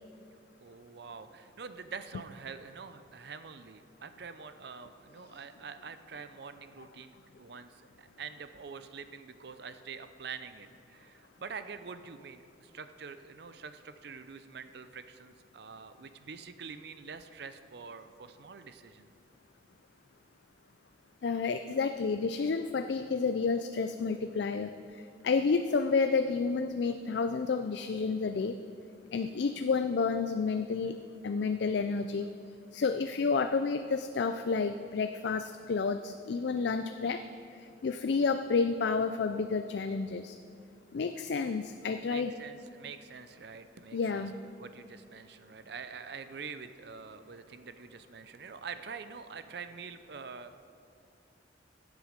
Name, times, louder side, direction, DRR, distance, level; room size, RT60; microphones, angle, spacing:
voice 1, 0.6-19.1 42.0-50.6, right 5 dB, 60° right, 10 dB, 0.5 m, -46 dB
voice 2, 21.2-24.7 25.2-28.6 29.1-31.0 31.2-32.3 32.7-37.3 37.8-40.4 40.9-42.3 43.9-44.4, left 4 dB, 60° left, 9 dB, 0.4 m, -30 dB
15.5 x 8.3 x 5.1 m, 2.6 s
head